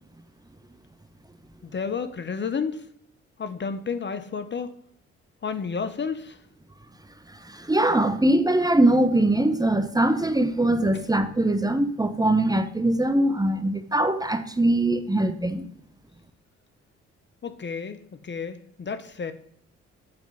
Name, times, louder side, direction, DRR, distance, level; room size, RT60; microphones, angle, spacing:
voice 1, 1.6-2.9 3.4-4.7 5.4-6.4 17.4-19.3, left 5 dB, 40° left, 0.8 m, -31 dB
voice 2, 7.3-15.7, right 1 dB, 15° right, 0.9 m, -22 dB
7.8 x 4.5 x 5.4 m
supercardioid pair, 50°, 30 cm